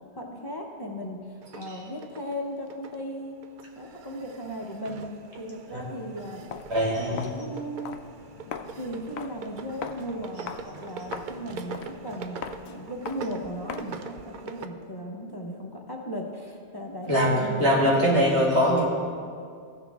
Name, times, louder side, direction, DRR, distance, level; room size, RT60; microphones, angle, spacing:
voice 1, 0.2-3.3 3.7-5.1 5.4-6.5 6.9-7.0 7.3-8.0 8.5-10.5 10.8-12.4 12.7-18.4, equal, 25° left, -1 dB, 0.9 m, -36 dB
sound 1, 1.4-14.7, right 5 dB, 60° right, 0.6 m, -43 dB
Walk footsteps, 6.4-14.1, left 7 dB, 80° left, 0.8 m, -42 dB
voice 2, 6.7-7.3 17.1-18.9, equal, 90° right, -5 dB, 2.2 m, -22 dB
15.5 x 6.3 x 3.5 m, 2.3 s
omnidirectional pair, 1.1 m